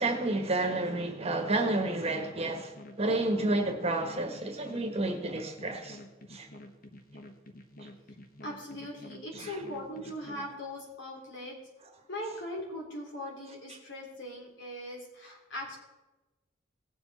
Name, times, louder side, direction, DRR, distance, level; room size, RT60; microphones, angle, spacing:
voice 1, 0.0-6.0 6.3-6.5 9.3-9.6, right 2 dB, 30° right, 1.4 m, -30 dB
sound 1, 0.6-10.5, left 1 dB, 45° left, 1.2 m, -50 dB
voice 2, 8.4-11.6 12.1-15.8, left 1 dB, 65° left, 3.6 m, -40 dB
17.5 x 7.0 x 4.2 m
head